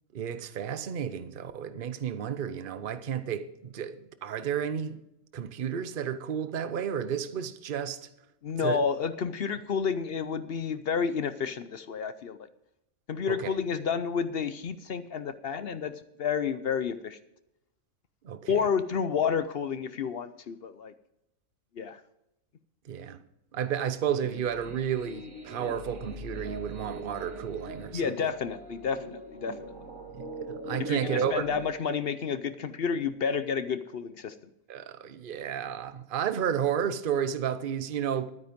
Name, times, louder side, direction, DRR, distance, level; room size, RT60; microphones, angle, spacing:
voice 1, 0.1-5.0 5.3-8.0 8.6-8.8 13.3-13.5 18.2-18.6 22.8-23.2 23.5-28.3 30.1-31.5 34.7-38.3, right 8 dB, 45° right, 0.8 m, -32 dB
voice 2, 8.4-12.4 13.1-17.2 18.5-20.9 21.8-22.0 27.9-29.6 30.8-34.3, left 6 dB, 55° left, 0.8 m, -30 dB
sound 1, 24.1-31.7, right 1 dB, 75° right, 2.2 m, -41 dB
12.5 x 9.6 x 5.1 m
omnidirectional pair, 1.4 m